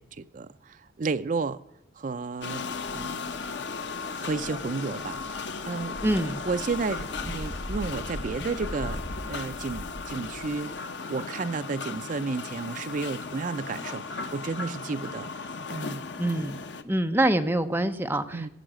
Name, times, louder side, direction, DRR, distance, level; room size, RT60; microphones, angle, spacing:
voice 1, 0.0-1.6 2.0-2.7 2.9-3.4 4.2-6.0 6.4-9.0 9.3-15.3 15.7-16.1 18.3-18.5, right 4 dB, 45° right, 0.5 m, -32 dB
sound 1, 2.4-16.8, left 4 dB, 80° left, 0.9 m, -36 dB
sound 2, 2.7-10.8, equal, 40° left, 6.0 m, -41 dB
voice 2, 6.0-6.4 16.2-18.5, right 1 dB, 10° right, 0.8 m, -26 dB
16.0 x 7.2 x 7.6 m
head